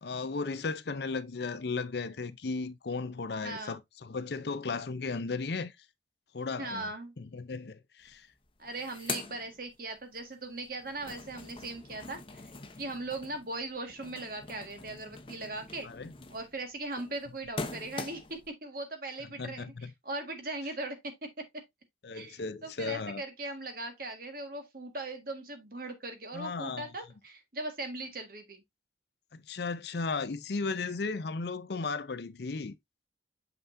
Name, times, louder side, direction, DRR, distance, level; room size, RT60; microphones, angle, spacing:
voice 1, 0.0-5.7 6.3-8.3 15.8-16.1 19.4-19.9 22.0-23.2 26.3-26.9 29.3-32.7, left 4 dB, 65° left, 0.6 m, -35 dB
voice 2, 3.4-3.8 6.6-7.1 8.6-12.5 12.8-15.9 16.3-21.5 22.1-28.6, right 2 dB, 50° right, 1.7 m, -39 dB
sound 1, 8.1-8.2 8.4-10.2 10.6-18.5, left 4 dB, 30° left, 0.8 m, -43 dB
6.9 x 5.7 x 2.6 m
head